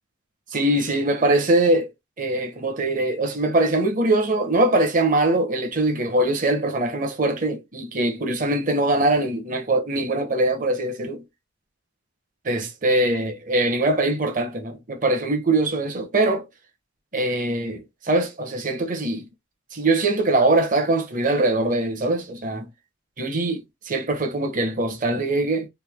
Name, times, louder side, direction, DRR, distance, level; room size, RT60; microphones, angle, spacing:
voice 1, 0.5-1.9 2.2-11.2 12.4-16.5 17.1-19.3 19.7-22.7 23.2-25.7, right 2 dB, 40° right, 0.9 m, -22 dB
3.3 x 2.7 x 3.5 m
head